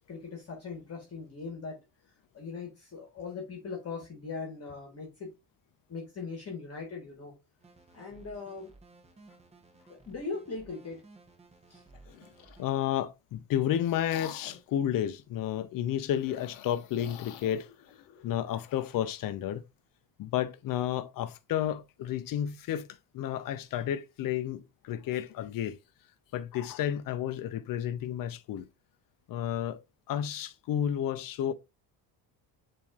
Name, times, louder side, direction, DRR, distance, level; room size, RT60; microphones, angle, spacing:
voice 1, 0.1-1.8 2.3-5.3 5.9-7.3 7.9-8.7 9.9-11.0 11.7-11.8, left 4 dB, 35° left, 1.3 m, -40 dB
sound 1, 7.6-12.6, right 3 dB, 15° right, 0.8 m, -57 dB
sound 2, 12.0-12.7 13.3-14.8 16.1-19.2, left 10 dB, 85° left, 0.8 m, -49 dB
voice 2, 12.6-17.7 18.2-19.6 20.2-22.9 23.1-25.8 26.3-28.7 29.3-29.8 30.1-31.5, left 10 dB, 50° left, 0.5 m, -31 dB
7.0 x 2.8 x 2.3 m
cardioid pair, 100°, 44 cm